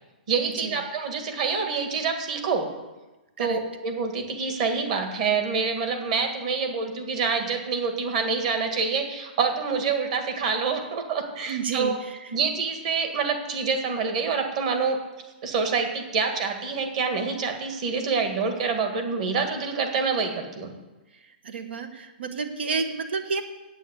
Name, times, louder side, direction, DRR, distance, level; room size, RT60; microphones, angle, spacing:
voice 1, 0.3-2.7 3.4-12.0 12.3-15.0 15.4-20.7, right 5 dB, 40° right, 4 dB, 1.9 m, -26 dB
voice 2, 11.5-11.9 21.4-23.4, right 5 dB, 85° right, 8 dB, 1.2 m, -30 dB
9.1 x 8.2 x 8.4 m, 1.1 s
hypercardioid pair, 175°, 6 cm